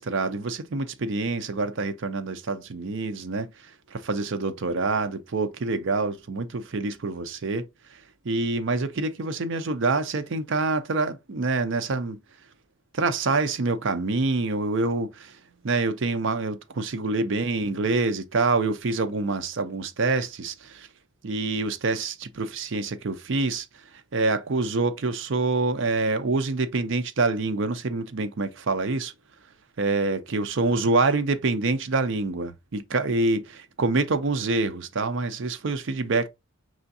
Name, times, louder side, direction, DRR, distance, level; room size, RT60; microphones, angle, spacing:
voice 1, 0.0-12.2 12.9-15.4 15.6-20.9 21.2-23.7 24.1-29.1 29.8-36.3, right 3 dB, 55° right, 0.5 m, -26 dB
4.9 x 3.4 x 2.6 m
head